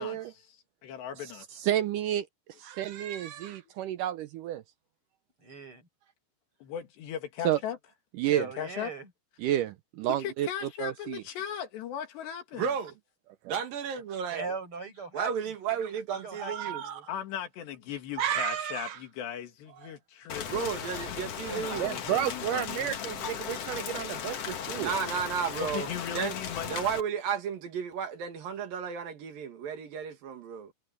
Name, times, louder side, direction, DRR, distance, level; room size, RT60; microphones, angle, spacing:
voice 1, 0.0-1.6 6.6-7.8 8.3-8.9 10.2-12.7 17.1-20.7 21.4-22.9 25.6-26.8, left 9 dB, 90° left, 4.4 m, -38 dB
voice 2, 1.6-2.2 2.6-4.6 7.4-7.6 8.2-8.5 9.4-10.5 10.8-11.2 13.4-13.5 16.4-17.0 18.2-19.0 21.8-24.9, right 12 dB, 85° right, 1.8 m, -31 dB
voice 3, 5.4-5.9 8.2-9.1 14.3-15.5 16.2-17.0 21.5-22.1 25.4-25.7, right 3 dB, 30° right, 7.8 m, -40 dB
voice 4, 12.5-12.9 13.5-14.4 15.1-16.8 20.5-21.9 24.8-26.4 26.7-30.7, right 7 dB, 60° right, 3.7 m, -33 dB
Rain, 20.3-27.0, left 8 dB, 55° left, 1.9 m, -37 dB
omnidirectional pair, 4.8 m